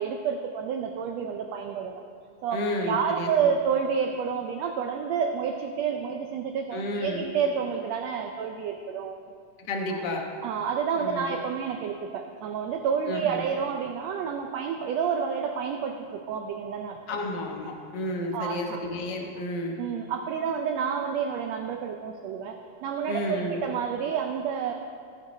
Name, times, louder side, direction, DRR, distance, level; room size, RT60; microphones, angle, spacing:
voice 1, 0.0-2.0 2.4-9.1 9.9-10.0 10.4-17.0 18.3-18.8 19.8-24.7, right 7 dB, 90° right, 5 dB, 1.5 m, -29 dB
voice 2, 2.5-3.5 6.7-7.3 9.7-10.2 10.9-11.3 13.1-13.4 17.1-19.7 23.1-23.6, left 1 dB, 65° left, 1 dB, 1.0 m, -31 dB
18.0 x 7.6 x 4.2 m, 2.3 s
omnidirectional pair, 3.7 m